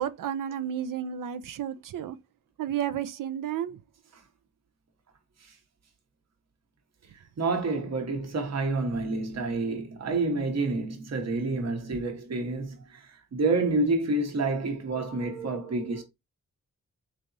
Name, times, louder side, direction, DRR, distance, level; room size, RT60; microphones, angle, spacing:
voice 1, 0.0-2.2 2.6-3.8, right 9 dB, 90° right, 0.5 m, -32 dB
voice 2, 7.1-16.0, right 3 dB, 55° right, 0.9 m, -28 dB
4.0 x 3.3 x 2.5 m
wide cardioid pair, 145°, 31 cm